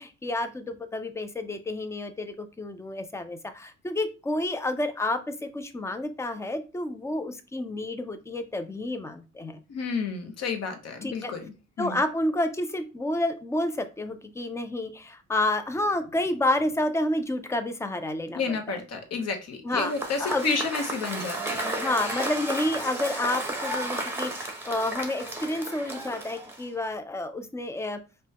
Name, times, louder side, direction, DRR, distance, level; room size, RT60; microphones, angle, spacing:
voice 1, 0.0-9.6 11.0-11.3 11.8-18.6 19.6-19.9 20.2-20.6 21.8-28.0, left 1 dB, 10° left, 9 dB, 0.4 m, -29 dB
voice 2, 9.7-12.0 18.3-21.7, left 4 dB, 60° left, 5 dB, 0.9 m, -31 dB
Cheering / Applause / Crowd, 19.7-26.8, right 1 dB, 10° right, 0.7 m, -33 dB
5.2 x 2.2 x 2.8 m, 0.31 s
cardioid pair, 140°, 29 cm